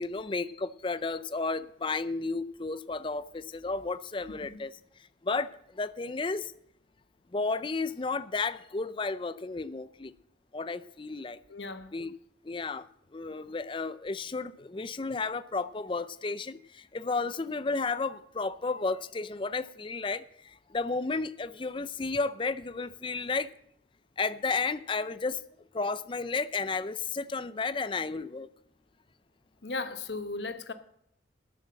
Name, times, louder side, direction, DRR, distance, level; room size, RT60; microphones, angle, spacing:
voice 1, 0.0-4.8 5.2-6.5 7.3-10.1 10.5-11.4 11.9-12.1 12.4-12.9 13.1-23.5 24.2-25.4 25.7-28.5, left 4 dB, 25° left, 0.5 m, -33 dB
voice 2, 11.5-11.9 29.6-30.7, left 3 dB, 70° left, 1.0 m, -36 dB
12.5 x 8.0 x 7.6 m
head